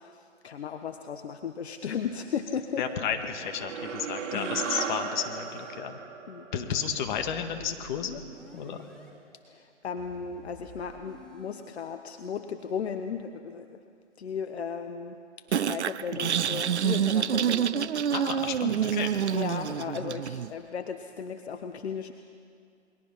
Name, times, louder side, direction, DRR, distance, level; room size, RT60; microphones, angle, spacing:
voice 1, 0.0-2.8 4.3-4.7 6.3-6.5 9.5-13.8 14.2-15.2 15.7-17.9 18.3-18.5 19.3-22.1, left 6 dB, 60° left, 7 dB, 1.2 m, -36 dB
voice 2, 2.8-6.0 6.5-8.2 8.5-8.9 18.1-19.2, left 8 dB, 40° left, 6 dB, 2.0 m, -32 dB
sound 1, 3.2-7.9, right 6 dB, 40° right, 3.4 m, -37 dB
sound 2, 4.8-5.7 6.5-9.1 10.0-11.6, left 2 dB, ahead, 3.5 m, -51 dB
sound 3, 15.5-20.5, right 9 dB, 65° right, 0.8 m, -27 dB
29.0 x 22.0 x 5.8 m, 2.4 s
figure-of-eight pair, 135°, 36 cm